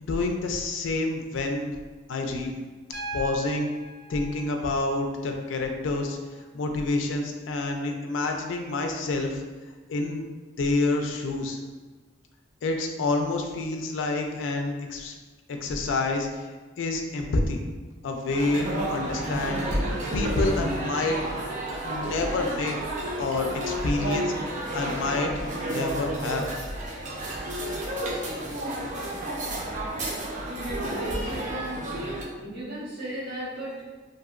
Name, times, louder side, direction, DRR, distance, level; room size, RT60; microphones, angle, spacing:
voice 1, 0.0-1.7 2.1-2.5 3.1-3.7 4.1-6.2 6.5-9.4 9.9-10.2 10.6-11.6 12.6-15.1 15.5-16.3 16.8-17.6 18.0-19.8 20.1-21.2 21.8-22.8 23.2-24.3 24.7-25.3 25.7-26.5, left 2 dB, 80° left, 3 dB, 0.4 m, -28 dB
Piano, 2.9-6.9 8.5-8.6, right 1 dB, 85° right, 0.7 m, -41 dB
sound 1, 18.3-32.2, right 1 dB, 40° right, 0.5 m, -31 dB
voice 2, 30.8-31.9 32.3-33.8, right 1 dB, 55° right, -11 dB, 1.5 m, -36 dB
2.8 x 2.6 x 2.4 m, 1.3 s
head